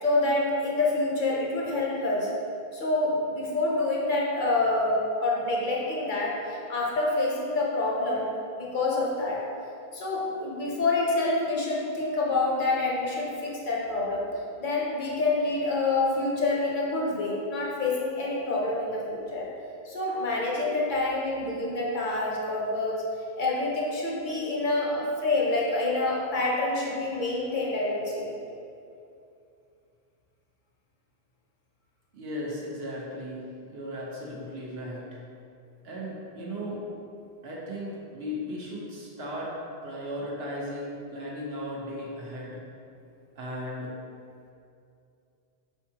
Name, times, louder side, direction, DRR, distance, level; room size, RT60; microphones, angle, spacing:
voice 1, 0.0-2.3 2.7-9.4 9.9-14.3 14.6-19.5 19.8-23.0 23.4-28.4, left 2 dB, 55° left, -4 dB, 0.8 m, -27 dB
voice 2, 32.1-35.2 35.8-36.8 37.4-39.5 39.8-42.6 43.4-43.9, equal, 75° right, -4 dB, 1.1 m, -36 dB
4.6 x 3.6 x 2.8 m, 2.6 s
omnidirectional pair, 1.0 m